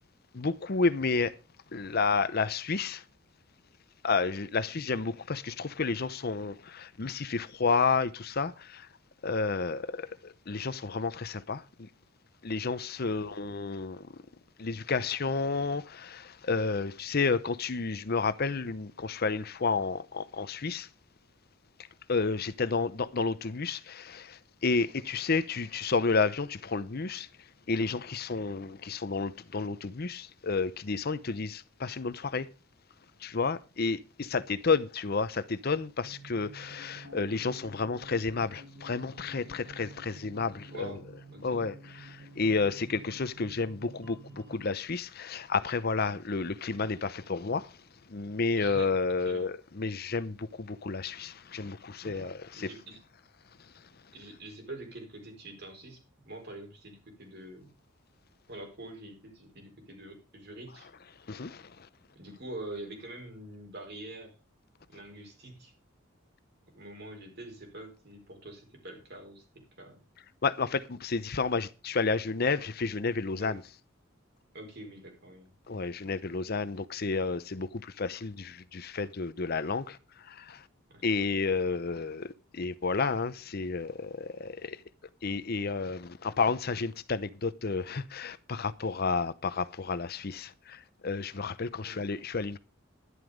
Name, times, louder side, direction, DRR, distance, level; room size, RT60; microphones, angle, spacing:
voice 1, 0.3-1.4 1.7-3.0 4.0-8.9 9.2-11.9 12.4-14.1 14.6-20.9 22.1-27.3 27.7-32.5 33.2-41.0 41.4-47.8 48.1-52.7 61.3-61.9 70.4-73.6 75.7-80.6 81.0-84.8 85.2-92.6, left 4 dB, 50° left, 0.7 m, -31 dB
voice 2, 13.0-13.5 22.6-22.9 40.7-41.7 48.5-48.9 49.2-49.5 52.0-53.0 54.1-56.0 56.2-57.7 58.5-60.9 62.1-64.3 64.9-65.7 66.7-70.0 73.4-73.6 74.5-75.5 76.0-76.2 80.9-81.1 91.7-92.0, right 1 dB, 55° right, 4.7 m, -45 dB
sound 1, 36.0-44.7, right 2 dB, 80° right, 4.2 m, -50 dB
11.0 x 11.0 x 5.1 m
head